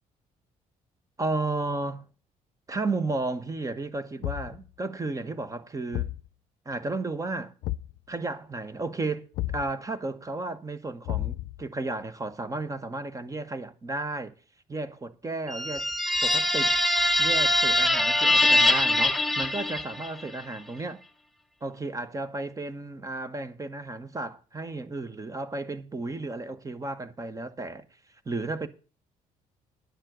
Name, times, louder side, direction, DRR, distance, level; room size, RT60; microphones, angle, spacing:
voice 1, 1.2-2.0 2.7-6.1 6.6-7.5 8.1-14.3 14.7-15.9 16.2-16.8 17.2-21.0 21.6-27.8 28.2-28.7, right 2 dB, 25° right, 1.2 m, -33 dB
Thump thud, 4.2-4.7 5.9-6.3 7.6-8.0 9.3-9.7 11.0-11.6, left 16 dB, 85° left, 0.5 m, -31 dB
sound 1, 15.5-20.2, left 1 dB, ahead, 1.0 m, -23 dB
10.5 x 7.3 x 6.6 m
cardioid pair, 105°, 15 cm